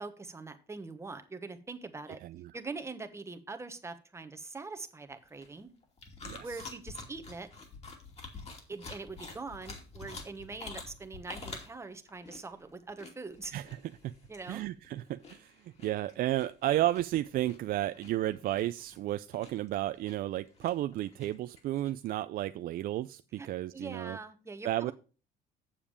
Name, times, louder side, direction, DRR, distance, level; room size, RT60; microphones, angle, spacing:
voice 1, 0.0-2.2 2.5-5.7 6.4-7.5 8.7-13.5 14.3-14.6 23.4-23.5 23.7-24.9, right 3 dB, 15° right, 8 dB, 1.1 m, -43 dB
sound 1, 5.1-21.9, left 3 dB, 40° left, 2.6 m, -48 dB
voice 2, 6.3-6.7 13.5-13.8 14.0-14.1 14.5-24.2 24.6-24.9, right 14 dB, 60° right, 12 dB, 0.4 m, -33 dB
7.2 x 7.1 x 4.9 m, 0.36 s
cardioid pair, 110°, 17 cm